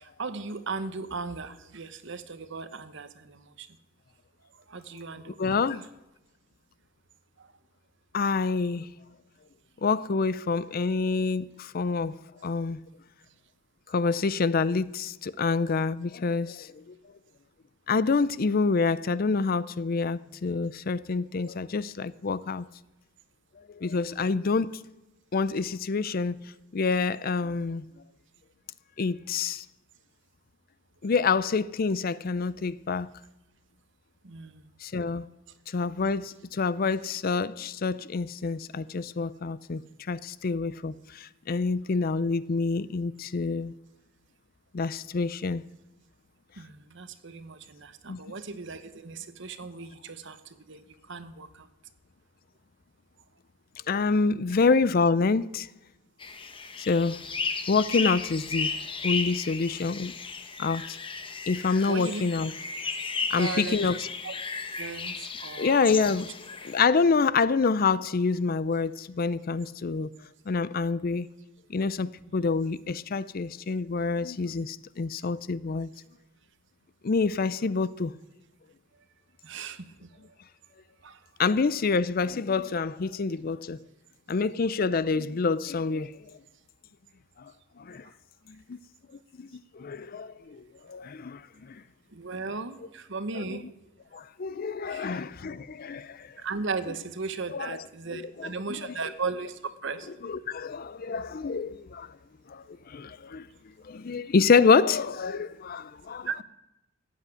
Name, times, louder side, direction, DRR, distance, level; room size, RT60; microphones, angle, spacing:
voice 1, 0.0-3.7 4.7-5.6 34.2-34.6 46.6-50.4 50.7-50.8 51.1-51.5 61.9-62.2 63.4-63.8 64.2-64.3 64.8-65.9 79.4-79.8 81.0-81.2 92.1-93.6 94.9-95.2 96.4-99.5 99.8-100.1 106.3-106.4, right 4 dB, 60° right, 1.1 m, -36 dB
voice 2, 5.4-5.8 8.1-8.9 9.8-12.8 13.9-16.9 17.9-22.7 23.7-24.7 25.3-26.4 26.7-27.8 29.0-29.6 31.0-33.1 34.8-35.3 35.7-39.8 40.1-43.7 44.7-45.6 48.1-48.2 53.9-55.7 56.8-57.2 57.7-58.7 59.0-60.1 60.6-61.0 61.5-62.5 63.3-64.1 65.6-66.3 66.6-70.1 70.5-71.3 71.7-75.9 77.0-78.1 81.4-83.8 84.3-86.1 87.8-88.0 88.7-88.8 89.4-89.5 89.7-91.4 91.7-91.8 92.8-92.9 93.3-93.7 94.1-96.3 97.5-99.0 100.1-102.1 102.5-103.5 103.8-106.3, left 4 dB, 45° left, 0.5 m, -27 dB
sound 1, 56.2-66.9, left 4 dB, 25° left, 1.0 m, -34 dB
15.0 x 8.3 x 9.1 m
head